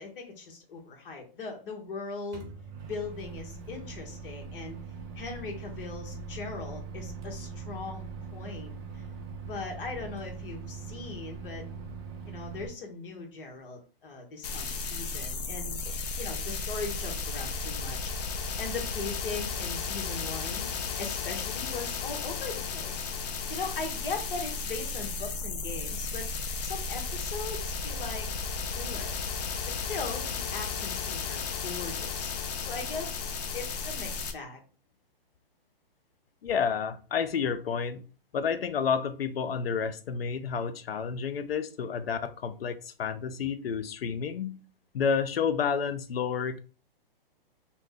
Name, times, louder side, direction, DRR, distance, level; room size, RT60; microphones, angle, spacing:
voice 1, 0.0-2.5 2.8-4.8 5.1-8.1 8.3-9.0 9.5-11.6 12.3-18.1 18.6-20.7 21.0-23.1 23.5-26.3 26.6-28.3 28.7-29.1 29.7-32.3 32.7-34.6, left 4 dB, 65° left, 1.3 m, -39 dB
Microwave oven, 2.3-12.7, right 4 dB, 30° right, 0.6 m, -41 dB
sound 1, 14.4-34.3, left 5 dB, 45° left, 0.6 m, -34 dB
voice 2, 36.4-38.0 38.3-44.6 44.9-46.6, left 6 dB, 90° left, 0.6 m, -30 dB
2.9 x 2.2 x 3.5 m
hypercardioid pair, 145°, 29 cm